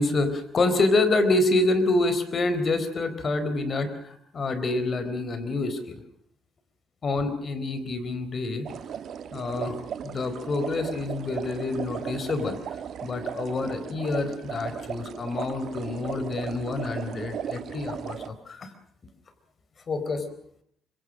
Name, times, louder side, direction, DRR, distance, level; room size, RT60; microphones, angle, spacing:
voice 1, 0.0-6.0 7.0-8.7 9.3-9.8 10.0-12.6 13.0-18.7 19.9-20.3, left 2 dB, 45° left, 10 dB, 4.2 m, -27 dB
sound 1, 8.6-18.3, right 8 dB, 65° right, 1.4 m, -36 dB
25.0 x 23.0 x 6.3 m, 0.63 s
cardioid pair, 90°, 0 cm